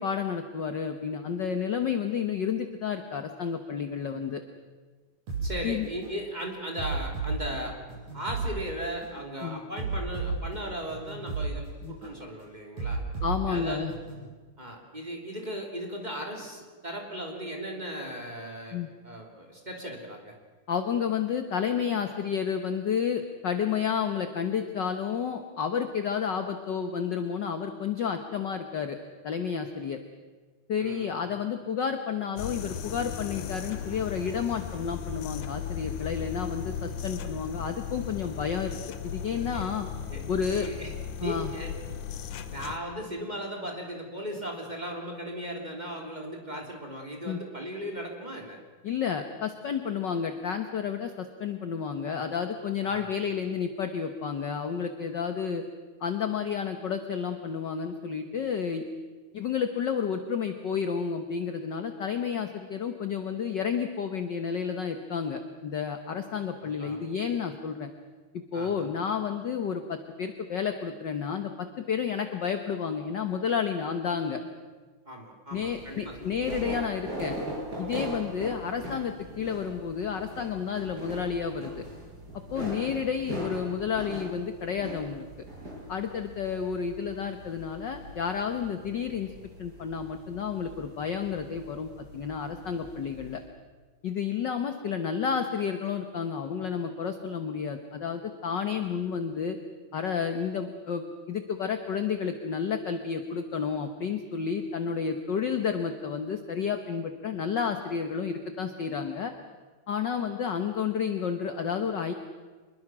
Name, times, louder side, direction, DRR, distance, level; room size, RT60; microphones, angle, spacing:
voice 1, 0.0-4.4 5.6-5.9 9.4-9.6 11.8-12.0 13.2-13.9 18.7-18.9 20.7-29.0 29.2-30.0 30.7-38.8 39.0-39.9 40.3-40.7 41.2-41.5 47.2-47.4 48.8-55.6 56.0-58.8 59.3-67.9 68.5-74.4 75.5-77.4 77.8-81.7 82.5-85.2 85.9-89.3 89.6-93.4 94.0-99.6 99.9-109.3 109.9-112.1, left 7 dB, 60° left, 7 dB, 1.2 m, -31 dB
sound 1, 5.3-5.5 6.0-6.2 6.8-8.5 9.0-9.2 9.8-11.5 12.0-12.2 12.8-14.3, right 4 dB, 80° right, 8.1 m, -33 dB
voice 2, 5.4-7.7 8.1-13.0 13.5-13.9 14.6-18.8 19.0-20.3 30.8-31.1 39.5-39.7 40.1-40.9 41.2-42.0 42.5-48.6 52.8-53.1 66.6-67.0 68.5-68.8 75.1-76.2 78.0-78.2, equal, 15° right, 1 dB, 3.0 m, -37 dB
sound 2, 32.4-42.8, left 8 dB, 85° left, 2.6 m, -37 dB
sound 3, 75.5-93.4, right 1 dB, 30° right, 7.5 m, -41 dB
25.5 x 21.5 x 6.2 m, 1.4 s
omnidirectional pair, 3.5 m